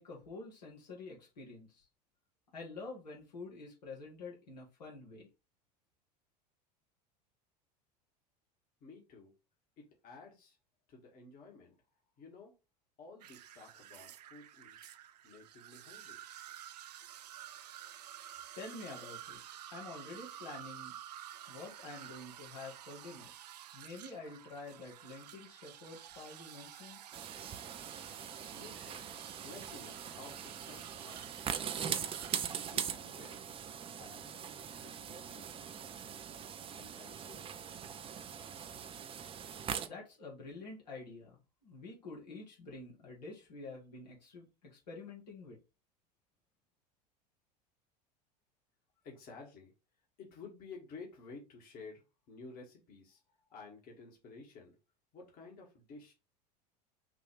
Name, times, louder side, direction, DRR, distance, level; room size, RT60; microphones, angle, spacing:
voice 1, 0.0-1.9 2.5-5.3 18.6-19.4 19.7-21.0 21.5-23.3 23.7-27.0 39.9-41.4 41.6-45.6, left 3 dB, 80° left, -3 dB, 2.0 m, -48 dB
voice 2, 8.8-9.3 9.8-10.6 10.9-11.7 12.2-12.5 13.0-14.9 15.2-16.2 28.5-29.0 29.4-31.2 31.7-32.2 32.5-33.5 33.9-34.2 35.1-35.7 36.7-37.5 49.0-49.7 50.2-54.8 55.1-56.1, left 4 dB, 45° left, 0 dB, 1.8 m, -53 dB
sound 1, 13.2-32.8, right 11 dB, 75° right, 0.5 m, -51 dB
sound 2, 27.1-39.9, right 8 dB, 25° right, 0.6 m, -42 dB
5.9 x 2.7 x 3.2 m, 0.29 s
figure-of-eight pair, 80°, 21 cm